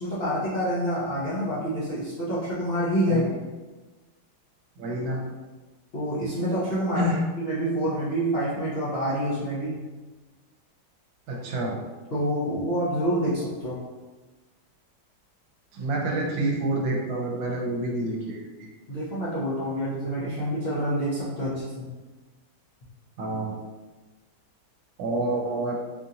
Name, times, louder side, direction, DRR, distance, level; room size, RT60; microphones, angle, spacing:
voice 1, 0.0-3.2 5.9-7.1 7.4-9.8 12.1-13.8 18.9-21.9, equal, 85° left, -10 dB, 0.5 m, -27 dB
voice 2, 4.8-5.2 6.9-7.2 11.3-11.8 15.7-18.7 23.2-23.6 25.0-25.8, right 1 dB, 75° right, -1 dB, 1.3 m, -28 dB
4.2 x 2.5 x 2.8 m, 1.2 s
omnidirectional pair, 2.2 m